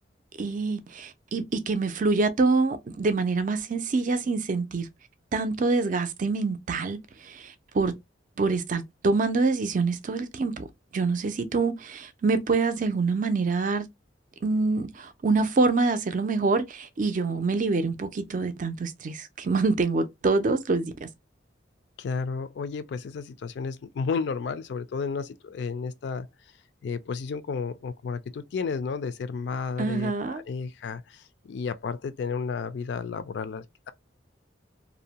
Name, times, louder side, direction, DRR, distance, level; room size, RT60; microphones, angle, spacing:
voice 1, 0.4-4.9 5.3-7.9 8.4-10.7 10.9-13.9 14.4-21.1 29.8-30.4, right 3 dB, 45° right, 0.4 m, -26 dB
voice 2, 22.0-26.3 26.8-33.9, left 5 dB, 60° left, 0.3 m, -32 dB
2.6 x 2.1 x 2.8 m
head